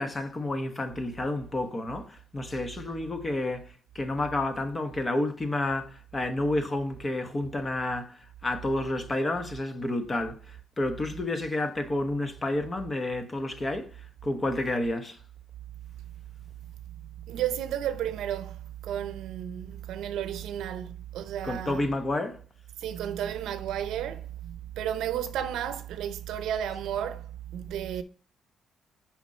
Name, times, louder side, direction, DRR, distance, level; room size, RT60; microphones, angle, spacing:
voice 1, 0.0-13.9 14.2-15.2 21.4-22.4, left 2 dB, 30° left, 1.2 m, -30 dB
voice 2, 17.0-21.9 22.8-28.0, right 10 dB, 85° right, 0.7 m, -33 dB
6.0 x 5.2 x 4.3 m
cardioid pair, 90°, 0 cm